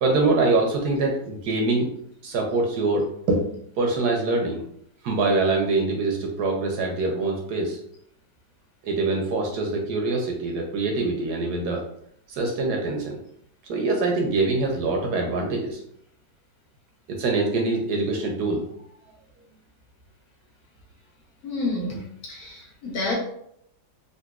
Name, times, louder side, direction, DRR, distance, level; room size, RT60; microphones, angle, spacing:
voice 1, 0.0-1.9 2.2-3.4 3.8-4.6 5.0-7.8 8.8-11.8 12.3-13.2 13.7-15.8 17.1-18.7, right 3 dB, 70° right, 1 dB, 1.0 m, -24 dB
voice 2, 21.4-23.1, left 2 dB, 60° left, -3 dB, 1.2 m, -29 dB
3.9 x 2.5 x 2.3 m, 0.70 s
omnidirectional pair, 2.0 m